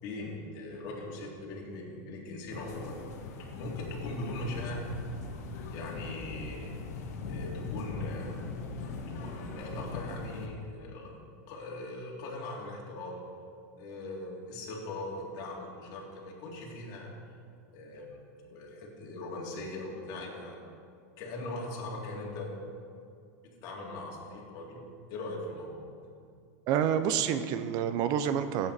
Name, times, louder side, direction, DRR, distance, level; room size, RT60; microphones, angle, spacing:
voice 1, 0.0-3.0 3.5-4.8 5.7-8.5 9.1-11.2 11.5-13.2 13.8-17.1 17.7-18.2 18.4-20.6 21.2-22.5 23.6-24.8 25.1-25.8, left 2 dB, 50° left, -2 dB, 3.1 m, -40 dB
sound 1, 2.5-10.5, left 3 dB, 70° left, 1.5 m, -40 dB
voice 2, 26.7-28.7, right 9 dB, 50° right, 10 dB, 0.7 m, -28 dB
15.5 x 8.9 x 4.3 m, 2.3 s
supercardioid pair, 125°, 9 cm